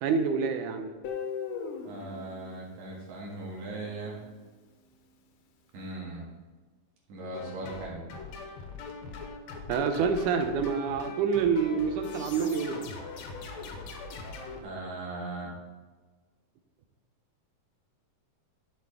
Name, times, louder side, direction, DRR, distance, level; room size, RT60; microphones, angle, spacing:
voice 1, 0.0-0.9 9.7-12.9, right 5 dB, 85° right, 7 dB, 2.2 m, -27 dB
Guitar, 1.0-4.0, left 6 dB, 90° left, 2.5 m, -39 dB
voice 2, 1.8-4.2 5.7-6.3 7.1-8.0 14.6-15.5, right 2 dB, 70° right, -3 dB, 3.1 m, -38 dB
sound 1, 7.3-14.6, left 4 dB, 70° left, 2.1 m, -42 dB
10.0 x 6.4 x 3.5 m, 1.3 s
omnidirectional pair, 3.5 m